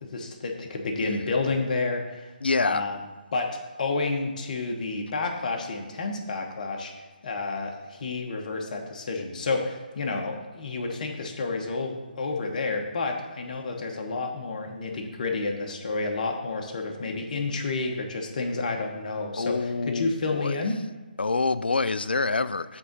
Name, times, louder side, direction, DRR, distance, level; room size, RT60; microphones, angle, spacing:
voice 1, 0.0-2.3 2.6-3.0 3.3-6.9 7.2-20.8, left 3 dB, 50° left, 1.2 m, -30 dB
voice 2, 2.4-2.8 19.4-20.6 21.2-22.8, left 3 dB, 80° left, 0.4 m, -26 dB
7.7 x 3.8 x 6.0 m
figure-of-eight pair, 145°, 5 cm